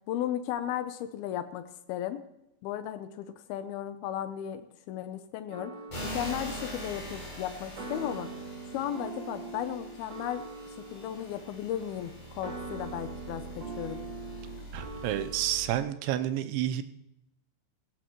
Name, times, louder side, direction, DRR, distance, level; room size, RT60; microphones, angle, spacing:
voice 1, 0.1-2.2 2.6-5.7 6.0-8.3 8.7-10.4 10.8-14.0, left 11 dB, 80° left, 10 dB, 2.3 m, -35 dB
sound 1, 5.5-16.2, right 3 dB, 50° right, 3.5 m, -43 dB
sound 2, 5.9-15.8, right 1 dB, 35° left, 8.2 m, -43 dB
voice 2, 14.7-16.8, right 12 dB, 85° right, 10 dB, 3.1 m, -30 dB
17.0 x 16.5 x 3.1 m, 0.86 s
omnidirectional pair, 5.2 m